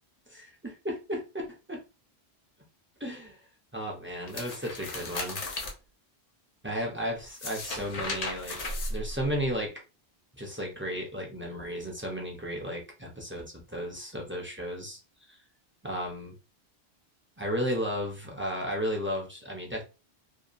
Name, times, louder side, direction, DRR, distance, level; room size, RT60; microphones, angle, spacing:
voice 1, 0.3-1.8 3.0-3.4 3.7-5.4 6.6-8.6 8.9-9.7 10.4-15.0 15.3-15.4 15.8-16.4 17.4-19.8, equal, 15° right, -1 dB, 0.4 m, -34 dB
sound 1, 4.3-5.7 7.2-9.5, left 2 dB, 45° left, 0.6 m, -35 dB
2.7 x 2.2 x 2.5 m, 0.31 s
omnidirectional pair, 1.1 m